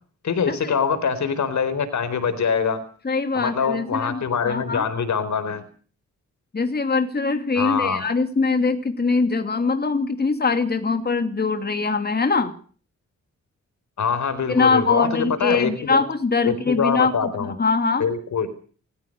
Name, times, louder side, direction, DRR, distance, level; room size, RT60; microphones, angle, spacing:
voice 1, 0.2-2.8 3.3-5.6 7.6-8.0 14.0-16.0 16.4-17.5 18.0-18.5, left 6 dB, 70° left, 13 dB, 4.4 m, -24 dB
voice 2, 3.0-4.8 6.5-12.5 14.5-18.1, left 4 dB, 35° left, 7 dB, 2.6 m, -22 dB
27.5 x 15.5 x 6.7 m, 0.43 s
wide cardioid pair, 115°, 29 cm